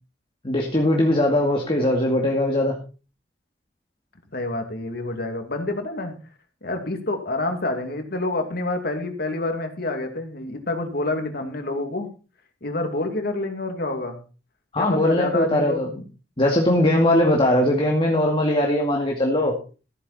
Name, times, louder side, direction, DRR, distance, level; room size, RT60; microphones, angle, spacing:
voice 1, 0.4-2.7 14.7-16.0 16.4-19.6, left 1 dB, 30° left, 0 dB, 2.2 m, -20 dB
voice 2, 4.3-6.1 6.6-12.1 12.6-14.2 14.8-15.8, left 2 dB, 60° left, 5 dB, 2.6 m, -27 dB
14.5 x 9.5 x 4.2 m, 0.35 s
head